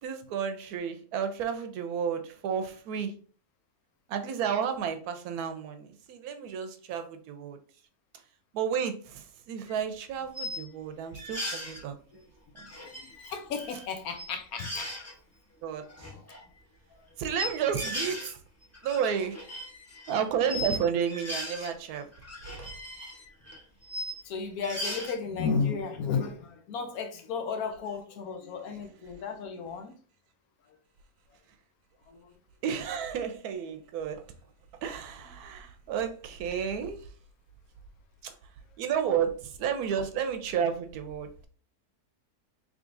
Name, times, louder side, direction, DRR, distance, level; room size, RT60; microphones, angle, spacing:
voice 1, 0.0-3.1 4.1-7.6 8.5-12.0 12.5-12.9 15.6-16.1 17.2-18.4 18.8-19.4 20.1-22.1 22.6-22.7 32.6-34.2 34.8-37.1 38.2-38.3 38.8-41.5, right 7 dB, 80° right, 1.1 m, -32 dB
sound 1, 9.7-9.8 10.3-10.6 11.1-11.8 12.6-13.9 14.1-14.3 14.6-15.1 15.8-16.4 17.4-18.3 18.6-20.8 21.1-21.7 22.1-24.2 24.6-25.1, left 1 dB, 15° left, 0.6 m, -38 dB
voice 2, 13.0-14.9 24.2-29.9 32.1-32.4, left 5 dB, 75° left, 1.1 m, -33 dB
3.6 x 3.3 x 2.5 m
omnidirectional pair, 1.6 m